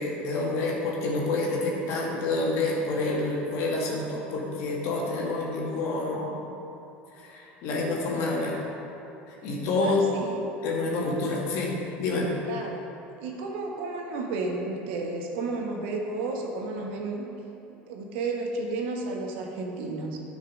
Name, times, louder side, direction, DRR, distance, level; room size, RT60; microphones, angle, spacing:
voice 1, 0.0-6.4 7.1-8.5 9.3-10.0 10.6-11.7 12.0-12.3, left 2 dB, 60° left, -3 dB, 2.0 m, -28 dB
voice 2, 9.8-10.4 12.4-12.9 13.2-17.3 17.9-20.2, right 3 dB, 70° right, 1 dB, 1.3 m, -32 dB
9.9 x 5.6 x 5.2 m, 2.8 s
hypercardioid pair, 80°, 6 cm